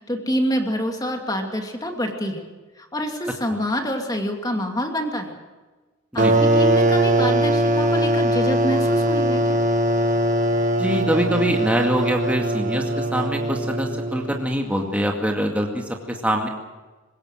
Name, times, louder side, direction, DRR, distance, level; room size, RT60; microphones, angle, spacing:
voice 1, 0.0-2.4 2.8-5.4 6.1-9.6, equal, 20° left, 3 dB, 2.6 m, -26 dB
sound 1, 6.2-14.6, right 1 dB, 35° right, 1.9 m, -21 dB
voice 2, 10.8-16.5, equal, 5° right, 1 dB, 2.2 m, -24 dB
25.0 x 21.0 x 6.5 m, 1.3 s
head